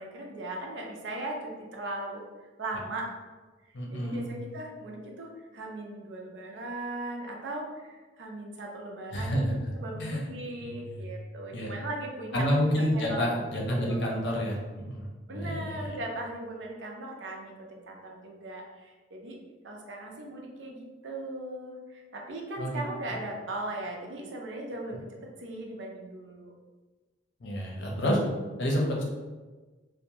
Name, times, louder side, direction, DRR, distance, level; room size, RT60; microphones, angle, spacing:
voice 1, 0.0-2.2 2.6-3.1 3.9-9.4 9.8-12.4 12.9-13.3 13.9-14.2 15.3-19.4 19.6-25.1 25.4-26.5, right 2 dB, 80° right, 0 dB, 0.5 m, -38 dB
voice 2, 3.7-4.3 9.1-9.6 9.9-10.2 10.6-11.0 11.5-11.8 12.3-15.9 22.6-22.8 23.1-23.2 27.4-28.2 28.6-29.0, equal, 70° left, -2 dB, 0.6 m, -29 dB
2.5 x 2.1 x 2.9 m, 1.3 s
head